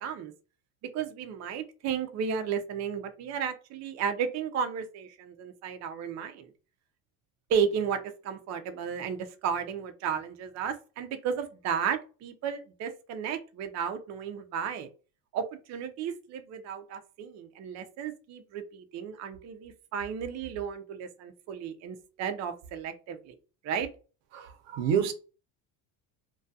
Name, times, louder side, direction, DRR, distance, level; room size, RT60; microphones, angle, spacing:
voice 1, 0.0-0.3 0.9-6.5 7.5-8.0 8.2-14.9 15.3-23.3 23.6-23.9, right 7 dB, 40° right, 0.4 m, -33 dB
voice 2, 24.3-25.1, right 8 dB, 80° right, 0.7 m, -28 dB
2.2 x 2.2 x 2.6 m
supercardioid pair, 100°, 46 cm